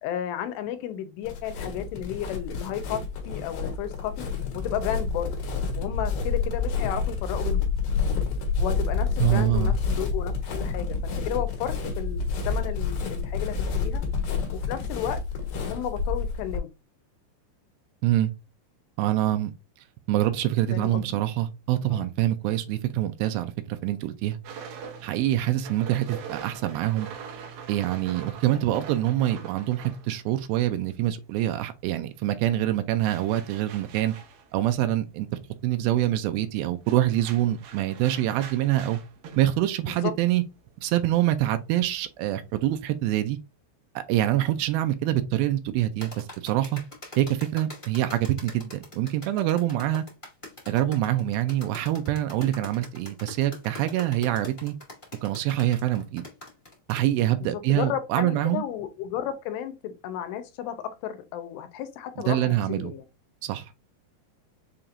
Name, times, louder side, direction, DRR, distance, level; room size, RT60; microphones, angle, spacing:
voice 1, 0.0-4.3 4.5-5.3 5.8-7.7 8.6-14.0 14.5-15.2 15.6-16.7 20.7-21.2 21.9-22.1 39.9-40.1 57.4-63.0, left 10 dB, 80° left, 2.8 m, -33 dB
sound 1, 1.2-16.6, left 5 dB, 65° left, 2.7 m, -28 dB
voice 2, 9.2-9.8 18.0-18.3 19.0-19.5 20.1-24.4 25.0-27.1 27.7-34.2 34.5-35.3 35.6-39.0 39.4-40.4 40.8-43.4 44.1-46.8 47.2-50.0 50.7-54.8 55.2-56.2 56.9-58.6 62.2-62.9 63.4-63.8, right 13 dB, 85° right, 2.1 m, -25 dB
sound 2, 24.4-31.2 31.4-43.0, right 7 dB, 70° right, 2.3 m, -44 dB
sound 3, 46.0-57.0, left 2 dB, 40° left, 0.4 m, -43 dB
6.9 x 2.9 x 2.5 m
omnidirectional pair, 4.9 m